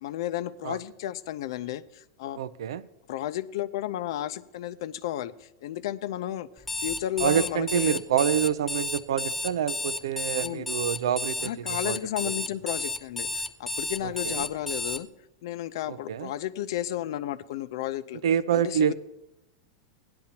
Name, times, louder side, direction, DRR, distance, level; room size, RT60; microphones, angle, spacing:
voice 1, 0.0-2.4 3.1-6.5 6.8-8.0 10.4-10.7 11.4-15.1 15.4-18.2 18.5-18.9, left 12 dB, 70° left, 14 dB, 0.5 m, -33 dB
voice 2, 2.4-2.8 7.2-12.3 14.0-14.5 15.9-16.3 18.2-18.9, right 9 dB, 90° right, 16 dB, 0.5 m, -27 dB
Alarm, 6.6-15.0, left 2 dB, 5° left, 0.5 m, -32 dB
17.0 x 10.5 x 2.9 m, 0.90 s
supercardioid pair, 145°, 3 cm